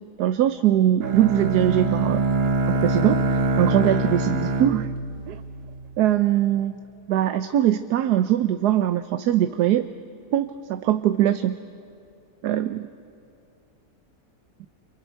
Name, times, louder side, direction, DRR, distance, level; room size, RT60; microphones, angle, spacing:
voice 1, 0.2-2.2 2.7-4.9 5.3-5.4 6.0-6.8 7.1-9.9 10.3-11.6 12.4-12.8, right 11 dB, 90° right, 10 dB, 1.3 m, -21 dB
Bowed string instrument, 1.0-6.0, right 2 dB, 45° right, 1.1 m, -24 dB
29.5 x 29.0 x 4.6 m, 2.6 s
omnidirectional pair, 1.7 m